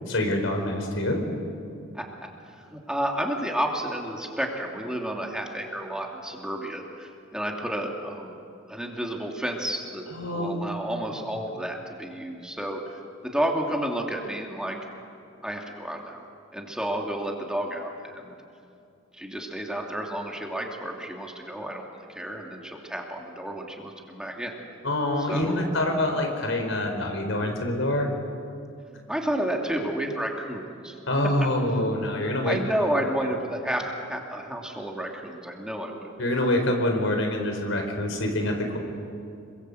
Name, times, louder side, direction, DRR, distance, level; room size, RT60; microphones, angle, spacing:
voice 1, 0.1-1.3 10.1-10.9 24.8-28.1 31.1-32.6 36.2-38.8, left 1 dB, 80° left, 3 dB, 4.7 m, -26 dB
voice 2, 2.5-8.4 8.7-14.8 15.4-16.2 16.5-18.4 19.1-24.5 25.3-25.7 29.1-31.0 31.4-31.5 31.8-31.9 32.4-33.8 34.1-36.1, right 1 dB, 5° right, 1 dB, 2.6 m, -31 dB
27.0 x 23.0 x 8.0 m, 2.5 s
head